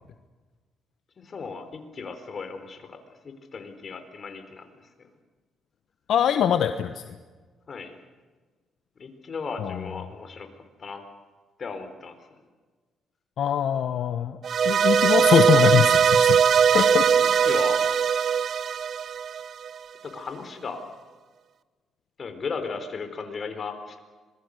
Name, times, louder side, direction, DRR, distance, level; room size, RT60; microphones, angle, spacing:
voice 1, 1.2-3.0 3.2-4.7 5.0-5.1 7.7-8.0 9.0-10.5 10.8-11.0 11.6-12.4 16.8-17.8 20.0-20.8 22.2-24.0, left 5 dB, 45° left, 8 dB, 4.3 m, -36 dB
voice 2, 6.1-7.2 9.6-9.8 13.4-14.4 14.6-16.4 16.7-17.1 17.4-17.5, left 9 dB, 70° left, 8 dB, 1.2 m, -23 dB
sound 1, 14.4-19.7, right 7 dB, 55° right, 0.9 m, -20 dB
26.5 x 21.5 x 6.7 m, 1.4 s
cardioid pair, 90°, 0 cm